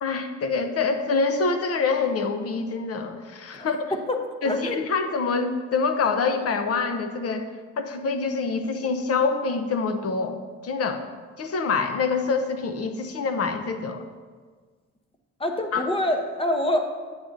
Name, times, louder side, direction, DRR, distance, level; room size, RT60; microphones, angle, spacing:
voice 1, 0.0-3.9 4.4-7.5 7.8-10.4 10.6-11.0 11.4-14.1 15.7-15.9, left 4 dB, 55° left, 7 dB, 0.7 m, -26 dB
voice 2, 4.4-4.8 15.4-16.8, left 1 dB, 20° left, 5 dB, 0.8 m, -25 dB
8.7 x 7.1 x 2.6 m, 1.5 s
cardioid pair, 90°, 30 cm